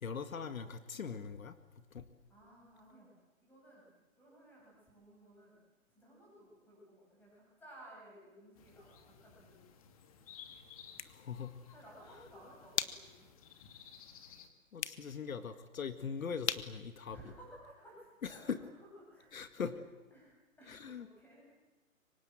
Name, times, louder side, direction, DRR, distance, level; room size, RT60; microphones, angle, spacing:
voice 1, 0.0-1.5 1.9-2.0 11.1-11.5 14.7-17.2 18.2-18.6 19.3-19.8 20.7-21.1, left 6 dB, 75° left, 10 dB, 2.0 m, -41 dB
voice 2, 2.3-3.1 3.4-3.9 4.2-5.6 5.9-9.7 11.7-13.3 14.9-15.1 17.1-19.7 20.1-20.3 20.6-21.4, right 1 dB, 5° left, -3 dB, 7.9 m, -57 dB
sound 1, 8.5-14.5, left 8 dB, 25° left, 1.8 m, -57 dB
sound 2, 10.7-18.1, left 8 dB, 55° left, 1.5 m, -45 dB
28.5 x 24.5 x 7.6 m, 1.1 s
hypercardioid pair, 170°, 41 cm